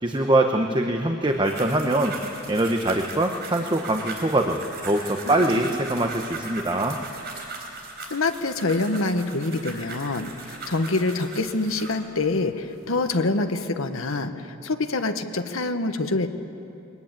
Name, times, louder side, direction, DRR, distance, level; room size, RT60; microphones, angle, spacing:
voice 1, 0.0-2.1 2.5-4.6 4.8-7.0, right 1 dB, 20° right, 4 dB, 0.9 m, -23 dB
sound 1, 1.2-12.0 12.7-13.1, right 3 dB, 50° right, 3.9 m, -39 dB
voice 2, 8.1-16.3, left 2 dB, 70° left, 7 dB, 1.2 m, -26 dB
22.0 x 19.5 x 8.9 m, 2.8 s
head